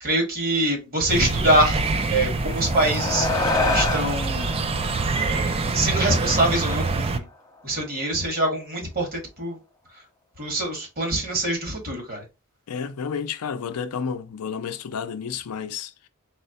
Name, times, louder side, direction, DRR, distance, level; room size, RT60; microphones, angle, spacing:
voice 1, 0.0-1.8 2.1-3.3 3.7-4.5 5.2-7.3 7.6-9.6 10.4-12.2, right 1 dB, 45° right, 1.7 m, -24 dB
sound 1, 1.1-7.2, right 3 dB, 25° right, 0.4 m, -25 dB
sound 2, 2.3-7.0, left 3 dB, 15° left, 0.7 m, -28 dB
voice 2, 12.7-16.1, left 6 dB, 80° left, 0.5 m, -31 dB
4.2 x 2.1 x 4.1 m
head